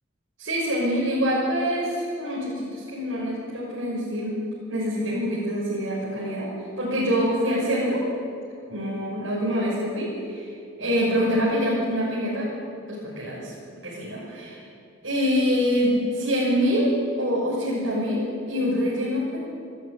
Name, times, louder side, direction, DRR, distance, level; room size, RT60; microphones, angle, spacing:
voice 1, 0.4-4.4 4.7-6.5 6.8-8.0 8.7-10.5 10.8-12.5 12.9-13.5 13.8-14.6 15.0-16.9 17.2-19.4, equal, 85° right, -6 dB, 6.3 m, -25 dB
27.5 x 13.5 x 8.7 m, 2.4 s
head